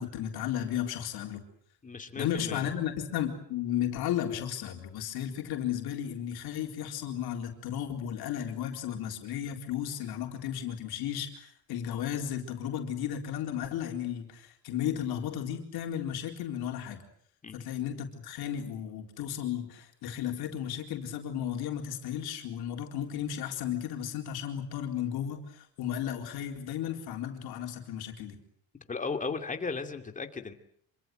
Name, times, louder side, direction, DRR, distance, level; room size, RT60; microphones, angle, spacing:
voice 1, 0.0-1.4 2.2-17.0 17.5-28.4, left 10 dB, 75° left, 3 dB, 4.2 m, -34 dB
voice 2, 1.8-2.6 17.4-17.7 28.9-30.5, left 4 dB, 20° left, 6 dB, 2.5 m, -36 dB
26.5 x 25.0 x 7.8 m, 0.63 s
cardioid pair, 155°, 38 cm